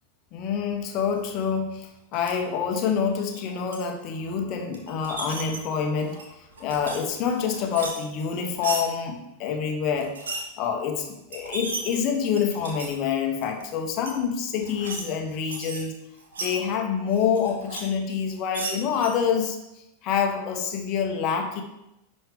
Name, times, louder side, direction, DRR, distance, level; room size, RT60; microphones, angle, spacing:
voice 1, 0.3-10.1 10.6-16.0 16.4-21.6, left 7 dB, 40° left, 4 dB, 1.1 m, -27 dB
sound 1, 2.1-2.3 3.2-3.8 4.7-5.6 6.0-7.0 7.3-8.8 10.0-10.4 11.0-11.1 11.3-12.9 13.4-13.6 14.0-14.1 14.6-15.0 15.3-16.5 17.1-17.8 18.1-19.1, right 3 dB, 65° right, 1.6 m, -35 dB
10.5 x 5.5 x 3.4 m, 0.89 s
figure-of-eight pair, 90°, 0 cm